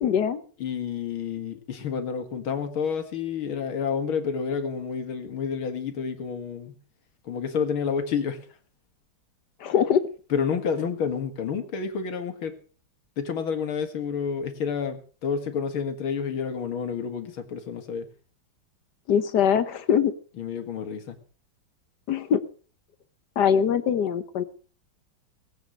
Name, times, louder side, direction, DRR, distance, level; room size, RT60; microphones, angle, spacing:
voice 1, 0.0-0.4 9.6-10.0 19.1-20.1 22.1-22.4 23.4-24.4, left 8 dB, 60° left, 14 dB, 1.4 m, -22 dB
voice 2, 0.6-6.7 7.2-8.4 10.3-12.6 13.2-18.1 20.4-21.2, left 6 dB, 85° left, 7 dB, 2.6 m, -29 dB
19.0 x 8.5 x 6.4 m, 0.42 s
omnidirectional pair, 2.2 m